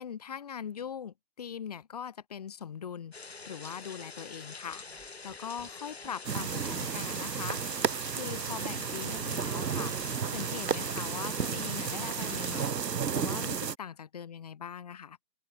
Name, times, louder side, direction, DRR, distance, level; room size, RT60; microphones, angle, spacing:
voice 1, 0.0-7.6 8.1-15.2, left 8 dB, 25° left, 4.7 m, -41 dB
sound 1, 3.1-12.7, left 4 dB, 40° left, 1.6 m, -46 dB
Squeak, 4.7-7.2 7.5-11.6, right 12 dB, 5° right, 3.4 m, -55 dB
sound 2, 6.2-13.7, right 7 dB, 75° right, 0.7 m, -33 dB
open air
figure-of-eight pair, 155°, 50 cm